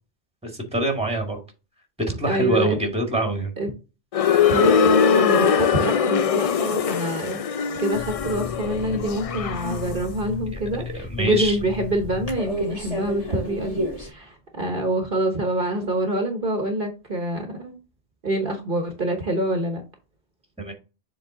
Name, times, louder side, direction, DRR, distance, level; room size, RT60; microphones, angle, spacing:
voice 1, 0.5-1.4 2.1-3.5 10.9-11.5 20.6-20.7, right 1 dB, 5° right, 3 dB, 1.7 m, -25 dB
voice 2, 2.2-2.8 3.6-3.7 4.5-7.4 7.8-17.8 18.2-19.8, right 1 dB, 50° right, 4 dB, 1.2 m, -26 dB
sound 1, 4.1-10.0, left 7 dB, 65° left, 0.3 m, -22 dB
sound 2, 7.9-14.1, left 1 dB, 35° left, 2.0 m, -33 dB
7.4 x 3.6 x 3.7 m, 0.30 s
omnidirectional pair, 1.2 m